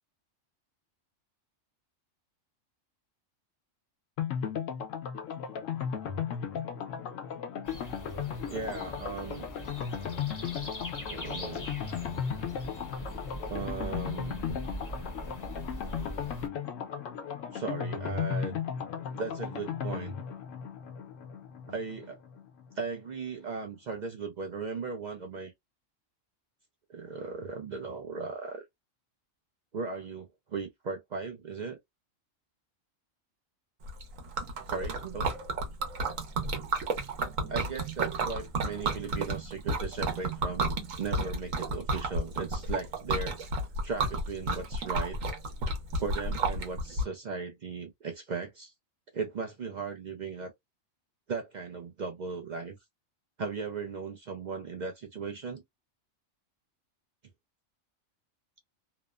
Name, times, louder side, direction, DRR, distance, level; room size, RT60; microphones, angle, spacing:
sound 1, 4.2-22.8 23.1-23.2 23.4-23.5, left 7 dB, 75° left, 1.0 m, -36 dB
sound 2, 7.6-16.5, right 1 dB, 20° left, 0.6 m, -42 dB
voice 1, 8.5-9.5 11.1-11.7 13.5-14.4 17.5-18.6 19.1-20.1 21.7-22.2 22.8-25.5 26.9-28.6 29.7-31.8 34.7-35.3 37.5-43.4 43.8-45.2 45.7-45.8 46.0-48.7 49.1-50.5 51.3-52.8 53.4-55.6, right 4 dB, 65° right, 0.4 m, -37 dB
Liquid, 33.9-47.0, right 2 dB, 80° right, 1.2 m, -32 dB
2.9 x 2.0 x 2.3 m
omnidirectional pair, 1.3 m